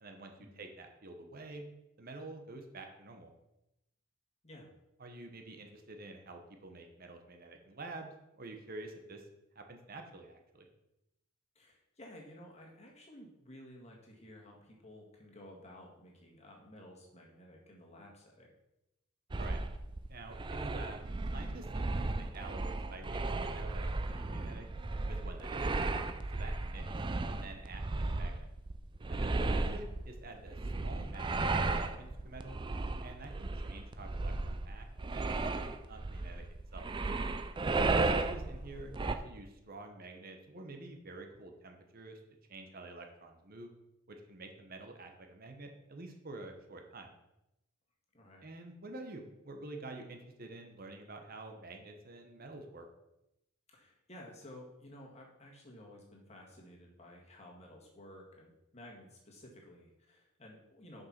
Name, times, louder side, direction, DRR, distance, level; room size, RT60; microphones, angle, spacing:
voice 1, 0.0-1.6 2.0-3.3 5.0-9.3 9.5-10.7 19.4-19.6 20.1-21.0 21.3-24.7 25.1-25.7 26.3-26.8 27.3-28.5 29.1-32.6 33.0-35.5 35.9-36.4 36.7-36.9 38.0-42.2 42.5-43.7 44.1-47.1 48.4-52.9, right 2 dB, 45° right, 4 dB, 1.0 m, -48 dB
voice 2, 11.6-18.5 29.4-29.6 48.1-48.5 53.7-61.1, left 1 dB, 30° left, -1 dB, 1.8 m, -54 dB
sound 1, 19.3-39.2, right 3 dB, 25° right, 0.4 m, -35 dB
6.8 x 5.4 x 5.8 m, 0.89 s
head